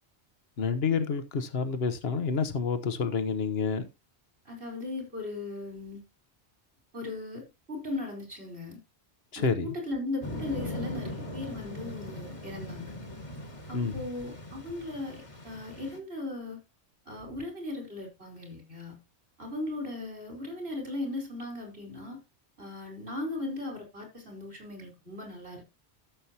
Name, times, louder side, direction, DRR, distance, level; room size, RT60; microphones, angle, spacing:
voice 1, 0.6-3.8 9.3-9.7 13.7-13.9, left 5 dB, 65° left, 1.3 m, -28 dB
voice 2, 4.4-6.0 6.9-8.8 9.3-12.9 13.7-16.6 17.1-19.0 19.4-22.2 22.6-25.6, left 2 dB, 65° right, 5.0 m, -38 dB
sound 1, 10.2-16.0, left 1 dB, 30° left, 1.5 m, -40 dB
13.5 x 7.1 x 2.9 m
omnidirectional pair, 1.1 m